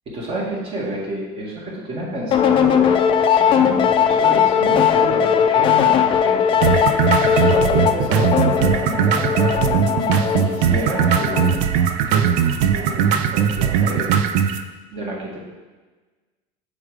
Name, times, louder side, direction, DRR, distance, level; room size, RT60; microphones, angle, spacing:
voice 1, 0.1-11.6 12.1-14.2 14.9-15.5, right 1 dB, 40° right, -3 dB, 1.7 m, -30 dB
sound 1, 2.3-11.7, left 8 dB, 35° left, 0.4 m, -18 dB
sound 2, 6.6-14.6, right 8 dB, 75° right, 0.4 m, -19 dB
6.2 x 3.7 x 4.7 m, 1.3 s
cardioid pair, 135°, 15 cm